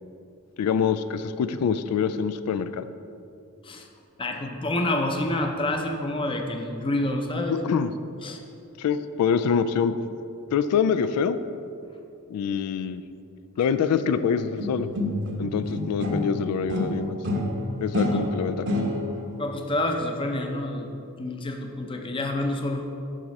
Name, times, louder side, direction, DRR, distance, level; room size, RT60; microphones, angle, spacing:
voice 1, 0.6-2.9 7.6-7.9 8.8-9.9 10.5-11.4 12.3-13.0 13.6-14.9 15.4-17.2 17.8-18.7, left 6 dB, 90° left, 13 dB, 0.3 m, -25 dB
voice 2, 4.2-7.6 8.2-8.4 18.1-18.4 19.4-20.9 21.2-22.9, left 1 dB, 25° left, 3 dB, 0.6 m, -28 dB
sound 1, 14.6-16.4 16.7-19.3, left 1 dB, 55° right, 0.8 m, -28 dB
7.5 x 4.1 x 5.3 m, 2.6 s
head